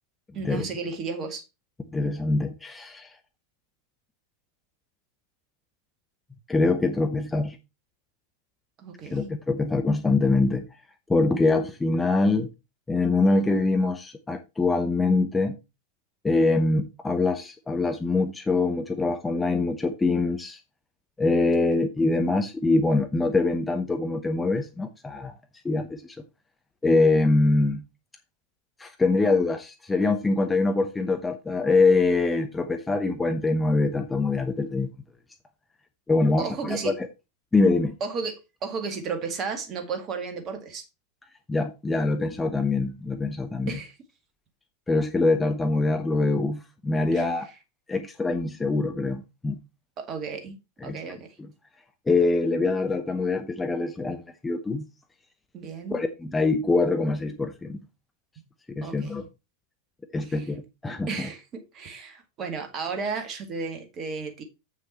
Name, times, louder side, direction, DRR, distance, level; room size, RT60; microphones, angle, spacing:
voice 1, 0.3-1.4 8.8-9.3 36.4-36.9 38.0-38.3 38.6-40.8 43.7-43.9 47.1-47.2 50.0-50.5 50.8-51.3 55.5-56.0 58.8-59.2 60.3-60.5 61.1-64.4, right 5 dB, 30° right, 1.9 m, -33 dB
voice 2, 1.9-3.1 6.5-7.6 9.1-10.7 11.1-12.5 12.9-15.6 16.2-20.6 21.2-25.3 25.6-26.2 26.8-27.8 28.8-34.9 36.1-37.1 37.5-38.0 41.5-43.7 44.9-47.5 47.9-49.6 50.8-51.0 52.1-54.9 55.9-57.8 58.8-59.2 60.1-61.3, left 3 dB, 10° left, 0.8 m, -24 dB
7.8 x 6.3 x 4.3 m
figure-of-eight pair, 90°, 0 cm